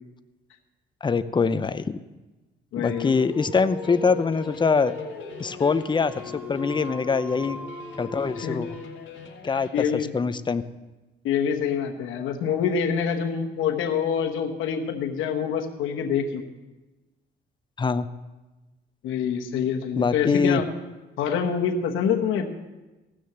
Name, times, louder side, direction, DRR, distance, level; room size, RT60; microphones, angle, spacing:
voice 1, 1.0-2.0 2.8-4.9 5.4-7.6 8.0-8.8 9.4-10.6 17.8-18.1 19.9-20.6, left 5 dB, 25° left, 12 dB, 0.6 m, -24 dB
voice 2, 2.7-3.2 8.4-8.6 9.7-10.1 11.2-16.4 19.0-20.7 21.2-22.5, left 7 dB, 85° left, 2 dB, 1.2 m, -26 dB
Dog, 2.8-9.2, left 1 dB, 5° right, 1.7 m, -39 dB
sound 1, 3.0-9.8, left 6 dB, 70° left, 1.8 m, -44 dB
16.0 x 6.3 x 8.0 m, 1.1 s
cardioid pair, 90°, 20 cm